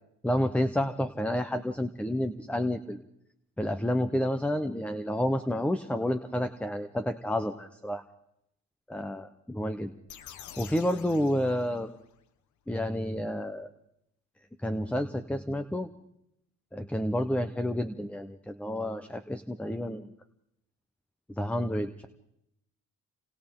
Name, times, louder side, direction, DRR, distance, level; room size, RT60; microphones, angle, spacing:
voice 1, 0.2-3.0 3.6-8.0 8.9-9.9 10.6-11.9 12.7-13.7 14.6-15.9 16.7-20.1 21.4-22.1, left 1 dB, 5° left, 10 dB, 1.0 m, -30 dB
sound 1, 10.1-12.2, left 9 dB, 70° left, 1.3 m, -48 dB
29.0 x 27.0 x 3.9 m, 0.80 s
cardioid pair, 90°, 30 cm